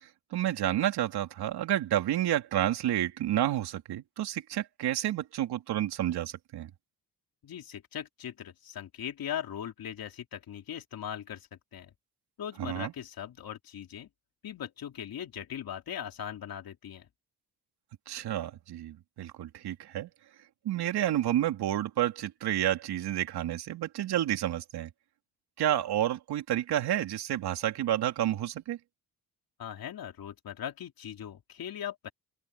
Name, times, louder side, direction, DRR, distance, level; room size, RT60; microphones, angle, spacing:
voice 1, 0.0-6.7 12.6-12.9 18.1-20.1 20.6-24.9 25.6-28.8, right 12 dB, 80° right, 3.1 m, -30 dB
voice 2, 7.4-11.9 12.4-14.1 14.4-17.1 29.6-32.1, left 9 dB, 65° left, 2.9 m, -39 dB
open air
cardioid pair, 105°, 39 cm